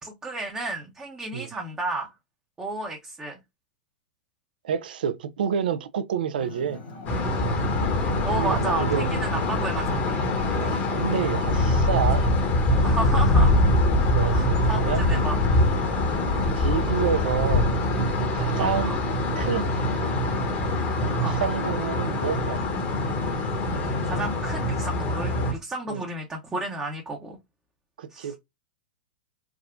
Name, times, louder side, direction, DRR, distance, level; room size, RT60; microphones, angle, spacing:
voice 1, 0.0-2.1 2.6-3.4 8.2-10.2 12.7-13.7 14.3-15.4 18.6-19.0 21.2-21.4 24.0-27.4 28.1-28.3, right 2 dB, 15° right, 0.7 m, -32 dB
voice 2, 4.6-6.8 8.3-9.1 10.5-12.2 14.1-15.1 16.6-17.7 18.3-18.9 19.3-19.8 21.0-22.6 25.9-26.0 28.0-28.4, right 7 dB, 70° right, 0.3 m, -28 dB
Ocean, 6.4-17.2, left 2 dB, 55° left, 1.5 m, -41 dB
sound 1, 7.1-25.5, left 1 dB, 35° left, 0.9 m, -24 dB
3.5 x 2.0 x 2.4 m
hypercardioid pair, 105°, 5 cm